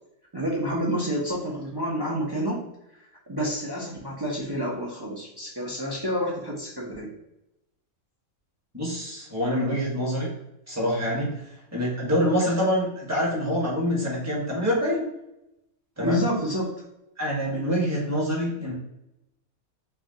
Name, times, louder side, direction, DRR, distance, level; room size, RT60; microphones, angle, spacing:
voice 1, 0.3-2.6 3.3-7.1 16.0-16.7, equal, 30° right, -4 dB, 0.4 m, -28 dB
voice 2, 8.7-10.3 10.7-11.4 11.7-15.0 16.0-16.2 17.2-18.7, equal, 10° right, -5 dB, 1.3 m, -25 dB
5.5 x 2.3 x 2.8 m, 0.88 s
omnidirectional pair, 1.5 m